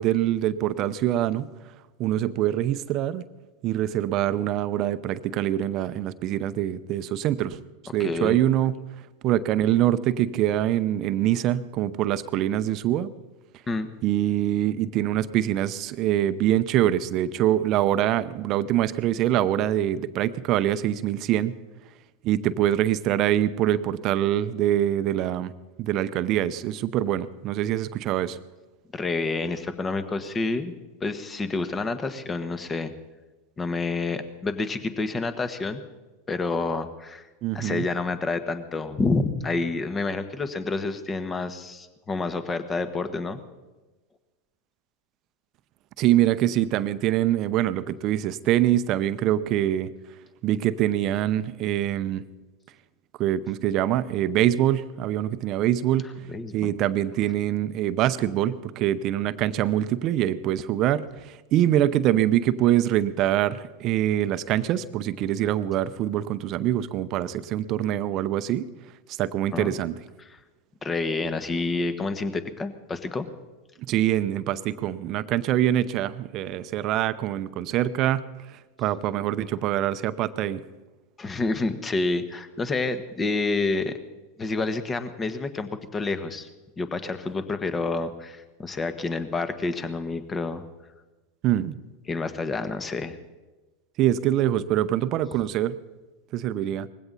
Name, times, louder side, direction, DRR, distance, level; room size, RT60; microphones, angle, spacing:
voice 1, 0.0-1.5 2.0-3.2 3.6-7.6 7.9-8.7 9.2-13.1 14.0-21.5 22.2-25.5 25.8-28.4 37.4-37.9 46.0-49.9 50.4-52.2 53.2-56.1 56.5-61.0 61.5-68.7 69.2-70.0 73.9-78.2 78.8-80.6 91.4-91.7 94.0-95.8 96.3-96.9, right 12 dB, 45° right, 14 dB, 0.7 m, -24 dB
voice 2, 8.0-8.4 13.7-13.9 28.9-30.7 31.0-32.9 33.6-35.8 36.3-37.3 37.5-43.4 56.3-56.7 69.5-69.7 70.2-70.4 70.8-73.3 81.2-83.9 84.4-86.5 86.8-90.6 92.1-93.1, left 3 dB, 20° left, 11 dB, 1.4 m, -28 dB
19.5 x 16.0 x 4.1 m, 1.2 s
hypercardioid pair, 95°, 0 cm